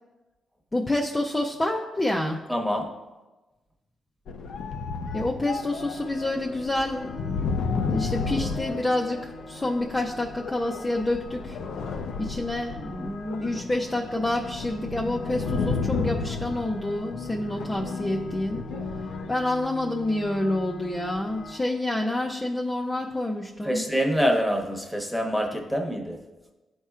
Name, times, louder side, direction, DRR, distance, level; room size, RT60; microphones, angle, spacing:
voice 1, 0.7-2.4 5.1-7.2 7.9-11.6 12.2-18.6 19.3-23.8, left 1 dB, 15° left, 0 dB, 0.5 m, -28 dB
voice 2, 2.5-2.9 23.6-26.2, equal, ahead, 0 dB, 1.0 m, -25 dB
sound 1, 4.3-9.6 10.4-19.3, left 4 dB, 90° left, 0.5 m, -32 dB
sound 2, 5.5-21.6, left 1 dB, 65° left, 0.9 m, -43 dB
12.5 x 4.3 x 2.4 m, 1.1 s
cardioid pair, 120°, 0 cm